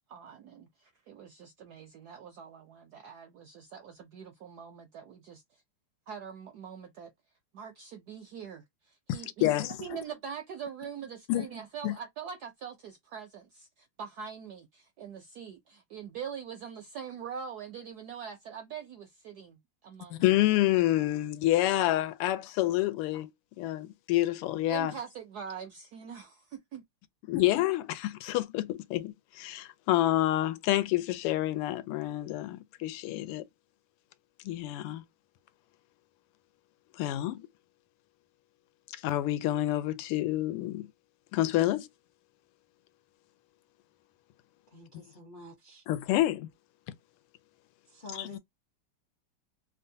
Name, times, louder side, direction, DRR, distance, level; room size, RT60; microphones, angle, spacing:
voice 1, 0.1-5.6 6.1-7.1 7.5-20.2 20.7-21.0 24.7-26.8, right 7 dB, 75° right, 0.9 m, -43 dB
voice 2, 9.4-9.7 11.3-11.4 11.8-11.9 20.1-23.3 23.6-24.9 27.3-33.4 34.4-35.0 37.0-37.5 38.9-40.9 41.3-41.9 44.9-45.0 45.9-46.5 48.2-48.4, left 15 dB, 90° left, 1.5 m, -28 dB
voice 3, 44.7-45.8 47.9-48.4, left 2 dB, 70° left, 0.4 m, -47 dB
3.6 x 2.3 x 2.6 m
omnidirectional pair, 2.4 m